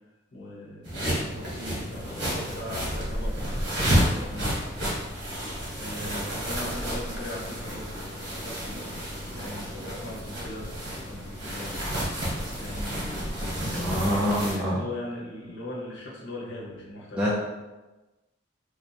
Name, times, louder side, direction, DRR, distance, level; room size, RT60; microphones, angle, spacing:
voice 1, 0.3-4.6 5.8-10.7 11.1-13.2 13.5-17.3, left 1 dB, 75° left, -4 dB, 1.1 m, -40 dB
sound 1, 0.8-14.6, equal, 60° right, 1.4 m, -31 dB
voice 2, 13.7-14.8 17.1-17.4, equal, 5° right, -7 dB, 0.5 m, -25 dB
3.1 x 2.7 x 4.1 m, 1.1 s
head